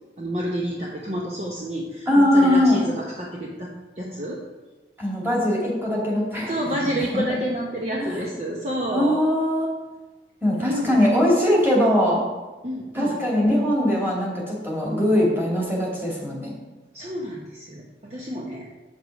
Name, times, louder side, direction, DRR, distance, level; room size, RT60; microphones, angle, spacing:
voice 1, 0.2-3.7 4.0-4.4 6.5-9.3 10.6-11.0 12.6-13.2 16.9-18.7, equal, 35° right, -3 dB, 0.9 m, -29 dB
voice 2, 2.1-2.8 5.0-6.5 7.1-7.2 8.9-9.7 10.4-12.2 12.9-16.5, left 1 dB, 15° right, -4 dB, 2.4 m, -21 dB
8.1 x 6.5 x 4.7 m, 1.2 s
head